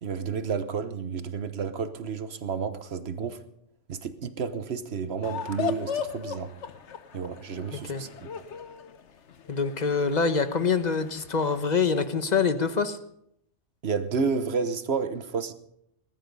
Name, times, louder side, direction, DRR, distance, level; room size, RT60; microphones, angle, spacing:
voice 1, 0.0-3.4 3.9-6.5 7.1-8.1 13.8-15.5, right 5 dB, 60° right, 1.3 m, -31 dB
sound 1, 5.2-11.7, left 8 dB, 70° left, 1.2 m, -37 dB
voice 2, 7.7-8.0 9.5-13.0, left 5 dB, 40° left, 1.2 m, -25 dB
20.0 x 13.0 x 5.4 m
omnidirectional pair, 1.2 m